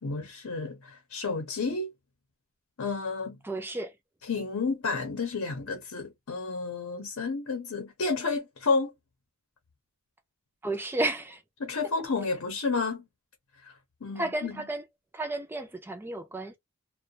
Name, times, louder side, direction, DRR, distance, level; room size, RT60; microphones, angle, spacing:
voice 1, 0.0-1.9 2.8-3.4 4.2-8.9 11.6-13.1 13.6-13.8 14.0-14.6, left 4 dB, 85° left, 0.7 m, -31 dB
voice 2, 3.4-3.9 10.6-11.4 14.2-14.8 15.1-16.6, right 2 dB, 10° right, 0.3 m, -32 dB
2.3 x 2.2 x 2.7 m
head